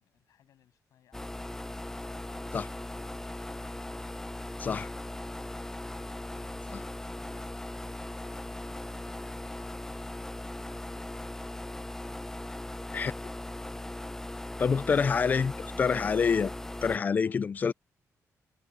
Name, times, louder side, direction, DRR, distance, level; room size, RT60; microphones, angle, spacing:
voice 1, 0.0-4.2 17.1-17.4, left 11 dB, 85° left, 7.7 m, -65 dB
sound 1, 1.1-17.0, left 1 dB, 10° left, 0.9 m, -39 dB
voice 2, 14.6-15.5 15.8-16.5 16.8-17.7, left 6 dB, 30° left, 0.3 m, -26 dB
wide cardioid pair, 155°, 6 cm